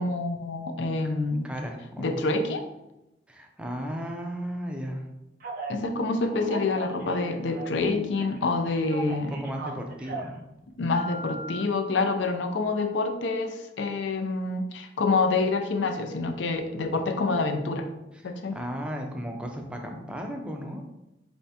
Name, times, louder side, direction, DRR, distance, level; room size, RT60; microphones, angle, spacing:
voice 1, 0.0-1.5 2.0-2.6 5.7-9.3 10.8-17.9 18.2-18.6, left 3 dB, 70° left, 6 dB, 0.5 m, -27 dB
voice 2, 1.4-2.2 3.3-5.0 9.1-10.4 18.2-20.8, equal, 5° right, 2 dB, 0.4 m, -35 dB
Telephone, 5.4-5.8 6.3-7.9 8.2-10.4 10.9-11.6, right 2 dB, 50° right, 0.6 m, -38 dB
4.2 x 3.4 x 2.8 m, 0.90 s
head